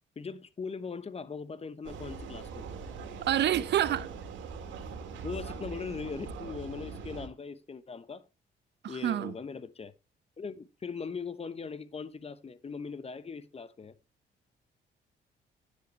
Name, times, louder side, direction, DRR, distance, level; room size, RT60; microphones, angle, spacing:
voice 1, 0.2-2.7 5.2-8.2 8.9-9.9 10.4-13.9, left 5 dB, 35° left, 1.0 m, -40 dB
Vehicle, 1.8-7.3, right 5 dB, 80° right, 1.9 m, -41 dB
voice 2, 3.2-4.1 8.8-9.3, right 11 dB, 65° right, 0.8 m, -27 dB
10.0 x 8.3 x 3.1 m
supercardioid pair, 65°, 19 cm